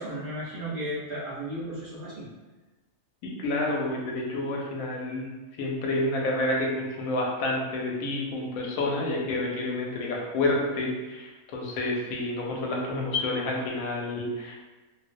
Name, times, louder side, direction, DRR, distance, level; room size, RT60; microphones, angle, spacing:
voice 1, 0.0-2.3, right 1 dB, 50° right, -7 dB, 0.7 m, -34 dB
voice 2, 3.2-5.3 5.6-14.5, left 2 dB, 85° left, -1 dB, 1.0 m, -29 dB
2.5 x 2.0 x 2.5 m, 1.2 s
omnidirectional pair, 1.4 m